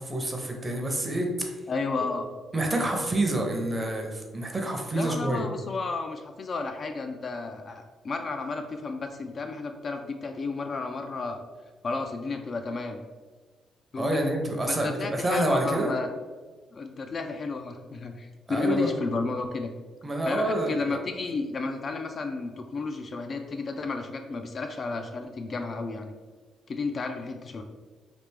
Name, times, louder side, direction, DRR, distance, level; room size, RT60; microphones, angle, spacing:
voice 1, 0.0-1.5 2.5-5.4 14.0-15.9 18.5-18.9 20.0-21.0, right 1 dB, 25° right, 2 dB, 0.6 m, -28 dB
voice 2, 1.7-2.3 4.9-11.4 11.8-13.0 13.9-14.3 14.7-16.1 16.7-19.7 20.2-26.1 26.7-27.6, left 3 dB, 45° left, 5 dB, 0.3 m, -32 dB
3.3 x 2.4 x 3.3 m, 1.3 s
cardioid pair, 90°, 0 cm